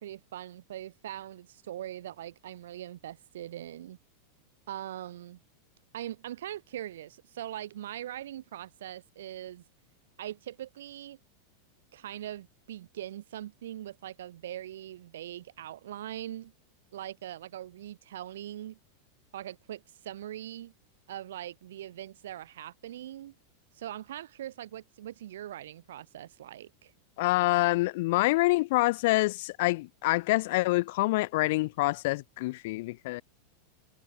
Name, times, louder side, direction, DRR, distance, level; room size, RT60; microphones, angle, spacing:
voice 1, 0.0-4.0 4.7-5.4 5.9-9.6 10.2-11.2 11.9-16.5 16.9-18.8 19.3-20.7 21.1-23.3 23.7-26.9, right 12 dB, 80° right, 3.2 m, -41 dB
voice 2, 27.2-33.2, left 21 dB, 65° left, 1.8 m, -26 dB
hypercardioid pair, 115°, 0 cm